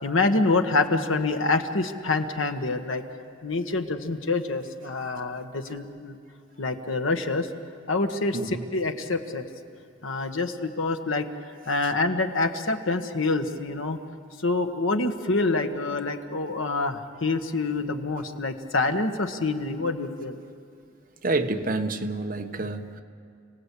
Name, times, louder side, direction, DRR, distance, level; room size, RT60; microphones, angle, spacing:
voice 1, 0.0-3.0 3.4-6.2 6.6-7.5 7.9-9.4 10.0-11.3 11.6-14.0 14.4-20.4, left 3 dB, 80° left, 6 dB, 1.5 m, -26 dB
voice 2, 21.2-23.0, right 2 dB, 45° right, 6 dB, 1.2 m, -28 dB
30.0 x 19.0 x 8.4 m, 2.3 s
head